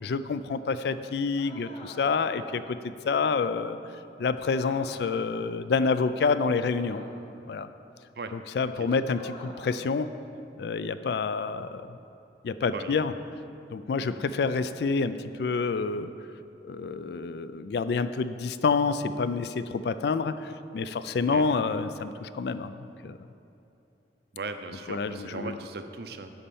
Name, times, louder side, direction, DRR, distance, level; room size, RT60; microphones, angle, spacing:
voice 1, 0.0-3.8 4.2-7.0 7.5-7.7 8.3-10.1 10.6-12.0 12.4-13.1 13.7-16.1 16.6-22.7 23.0-23.2 24.9-25.6, left 4 dB, 60° left, 12 dB, 0.3 m, -28 dB
sound 1, 1.3-2.6 4.4-5.2 6.8-7.4 9.1-9.9, left 1 dB, 35° left, 0.8 m, -47 dB
voice 2, 12.6-13.1 14.0-14.2 21.3-21.5 24.3-26.3, right 3 dB, 60° right, 8 dB, 0.5 m, -39 dB
11.0 x 4.2 x 7.0 m, 2.8 s
head